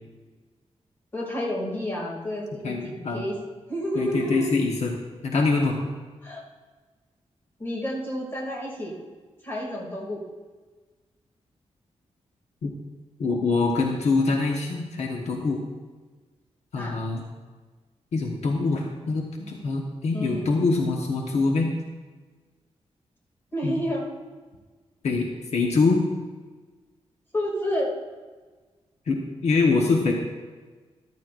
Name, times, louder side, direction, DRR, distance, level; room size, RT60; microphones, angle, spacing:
voice 1, 1.1-3.4 3.7-4.5 6.2-6.4 7.6-8.9 9.4-10.2 16.8-17.0 20.1-20.5 23.5-24.0 27.3-27.9, equal, 20° left, -3 dB, 2.5 m, -30 dB
voice 2, 2.6-3.2 3.9-4.9 5.2-5.7 12.6-12.7 13.2-15.6 16.7-17.2 18.1-21.7 23.6-23.8 25.0-26.0 29.1-30.1, left 3 dB, 70° left, 0 dB, 1.2 m, -24 dB
13.5 x 12.5 x 2.6 m, 1.4 s
wide cardioid pair, 170°, 12 cm